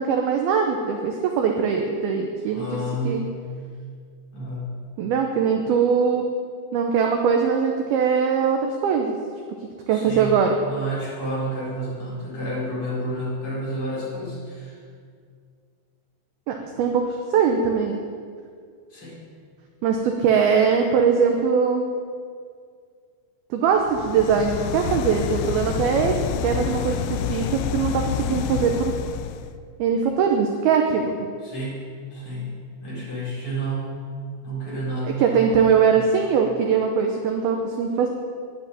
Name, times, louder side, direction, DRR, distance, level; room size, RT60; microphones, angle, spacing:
voice 1, 0.0-3.2 5.0-6.3 6.7-9.2 9.9-10.6 16.5-18.0 19.8-21.9 23.5-26.1 26.4-28.9 29.8-31.3 35.2-38.1, right 6 dB, 80° right, 3 dB, 2.2 m, -21 dB
voice 2, 2.5-3.4 4.3-4.8 9.9-14.8 18.9-19.2 31.4-34.0 34.4-35.2 35.9-36.1, right 1 dB, 30° left, -7 dB, 5.2 m, -30 dB
sound 1, 23.8-29.5, left 9 dB, 85° left, 3.0 m, -28 dB
10.5 x 10.5 x 9.9 m, 2.1 s
omnidirectional pair, 5.6 m